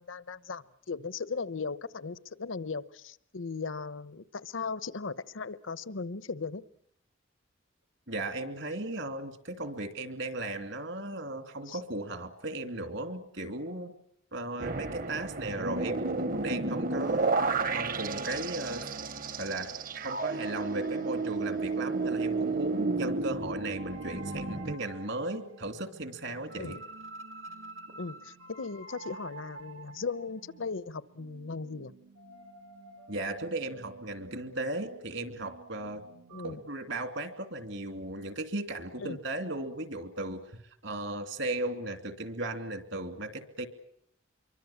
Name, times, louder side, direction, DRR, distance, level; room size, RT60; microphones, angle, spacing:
voice 1, 0.0-6.6 11.7-11.8 26.6-26.8 28.0-31.9 36.3-36.6 39.0-39.2, left 4 dB, 80° left, 16 dB, 0.9 m, -37 dB
voice 2, 8.1-13.9 14.3-17.4 17.7-18.9 19.4-26.8 33.1-36.0 36.4-40.4 40.8-43.7, right 2 dB, 70° right, 8 dB, 2.8 m, -36 dB
sound 1, 14.6-24.7, right 3 dB, 45° right, 0.9 m, -32 dB
sound 2, 23.8-36.5, right 2 dB, 85° right, 1.9 m, -49 dB
26.5 x 23.5 x 7.3 m, 0.74 s
head